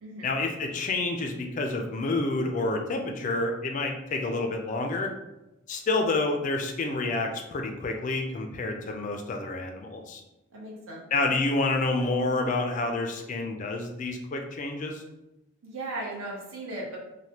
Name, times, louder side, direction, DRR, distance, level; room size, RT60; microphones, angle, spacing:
voice 1, 0.2-5.1 5.7-10.2 11.1-15.0, left 2 dB, 35° left, 3 dB, 0.3 m, -28 dB
voice 2, 10.5-11.0 15.6-17.0, right 2 dB, 75° right, -4 dB, 0.7 m, -37 dB
3.2 x 2.1 x 2.8 m, 0.97 s
head